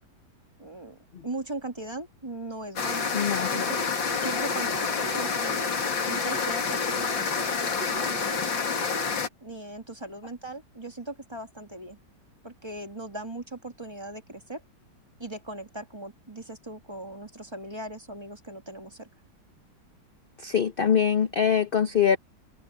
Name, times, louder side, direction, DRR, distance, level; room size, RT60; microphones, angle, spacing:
voice 1, 0.6-5.7 6.1-8.6 9.4-12.0 12.4-14.6 15.2-19.1, right 2 dB, 15° right, 1.9 m, -39 dB
sound 1, 2.8-9.3, left 5 dB, 80° left, 3.1 m, -28 dB
voice 2, 3.1-3.7 20.4-22.2, left 8 dB, 45° left, 0.7 m, -23 dB
omnidirectional pair, 2.0 m